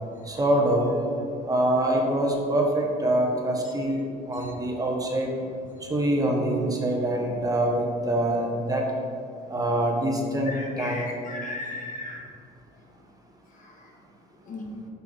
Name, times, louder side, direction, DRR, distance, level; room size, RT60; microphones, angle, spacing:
voice 1, 0.3-0.9 1.5-4.0 4.3-5.3 5.9-8.8 9.5-11.1, right 1 dB, 20° right, 0 dB, 1.2 m, -24 dB
voice 2, 10.5-12.3 14.5-14.6, left 2 dB, 50° left, 0 dB, 1.5 m, -36 dB
8.2 x 6.9 x 3.5 m, 2.5 s
cardioid pair, 110°, 17 cm